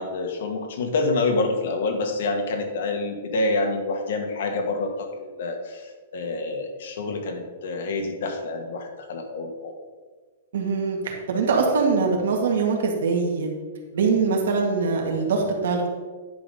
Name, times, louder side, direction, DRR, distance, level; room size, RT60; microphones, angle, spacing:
voice 1, 0.0-9.7, left 3 dB, 60° left, 3 dB, 1.7 m, -27 dB
voice 2, 10.5-13.5 13.9-15.9, right 4 dB, 75° right, 1 dB, 2.1 m, -23 dB
10.5 x 4.0 x 6.7 m, 1.4 s
hypercardioid pair, 175°, 0 cm